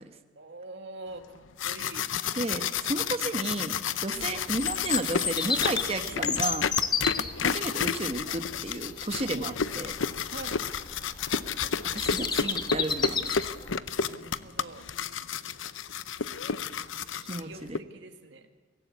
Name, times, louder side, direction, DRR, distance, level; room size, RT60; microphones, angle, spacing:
voice 1, 0.4-2.1 4.1-4.4 7.0-7.3 9.3-9.6 10.3-10.6 14.1-14.9 17.2-18.5, right 2 dB, 70° right, 6 dB, 2.1 m, -44 dB
sound 1, 1.4-17.8, left 7 dB, 90° left, 0.8 m, -31 dB
voice 2, 2.3-3.7 4.0-6.6 7.4-9.9 11.9-13.3 17.3-17.8, right 2 dB, 30° right, 8 dB, 1.4 m, -33 dB
Bird vocalization bird call bird song, 4.1-13.8, left 5 dB, 20° left, 1.1 m, -33 dB
24.0 x 17.0 x 8.3 m, 1.4 s
head